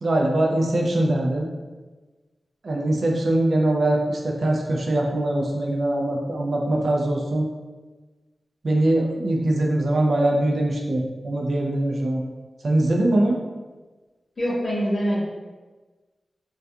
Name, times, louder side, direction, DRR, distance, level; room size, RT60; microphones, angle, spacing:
voice 1, 0.0-1.5 2.6-7.5 8.6-12.2 12.6-13.4, right 1 dB, 60° right, -1 dB, 0.4 m, -22 dB
voice 2, 14.4-15.2, equal, 40° left, -9 dB, 0.8 m, -24 dB
2.3 x 2.3 x 2.6 m, 1.3 s
wide cardioid pair, 125°, 0 cm